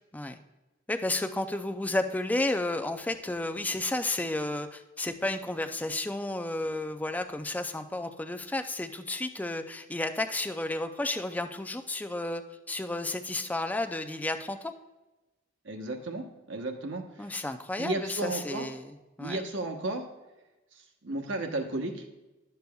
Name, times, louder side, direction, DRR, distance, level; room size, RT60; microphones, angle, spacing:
voice 1, 0.9-12.4 12.7-14.7 17.2-18.9 19.2-19.4, left 2 dB, 10° left, 7 dB, 0.4 m, -32 dB
voice 2, 15.6-17.3 17.8-18.7 19.2-20.0 21.0-22.0, right 2 dB, 70° right, 3 dB, 1.0 m, -33 dB
11.5 x 6.8 x 2.3 m, 1.0 s
head